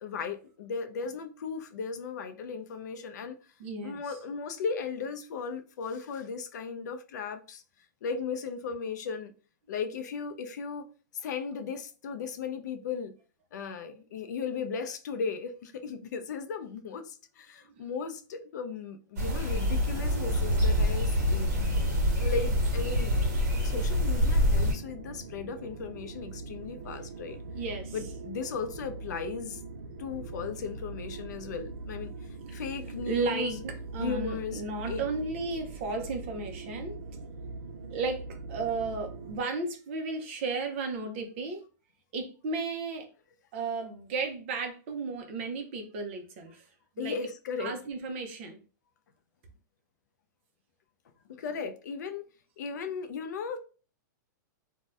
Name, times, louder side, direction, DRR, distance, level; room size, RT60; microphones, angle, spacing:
voice 1, 0.0-3.4 3.8-7.6 8.0-9.3 9.7-10.9 11.1-13.1 13.5-21.5 22.2-23.1 23.6-27.4 27.9-29.6 30.0-32.1 32.5-33.6 34.0-34.6 34.9-35.0 47.0-47.8 51.3-52.2 52.6-53.6, left 5 dB, 65° left, 0.4 m, -36 dB
voice 2, 3.6-4.2 17.7-17.8 26.9-28.0 32.5-32.6 33.1-37.0 37.9-41.6 42.1-43.1 43.5-46.7 47.0-47.2 47.6-48.6, right 4 dB, 40° right, 0.5 m, -34 dB
sound 1, 19.2-24.7, left 1 dB, 55° right, 1.2 m, -26 dB
sound 2, 20.0-39.4, right 3 dB, 85° right, 0.5 m, -42 dB
2.6 x 2.1 x 3.3 m
supercardioid pair, 170°, 10 cm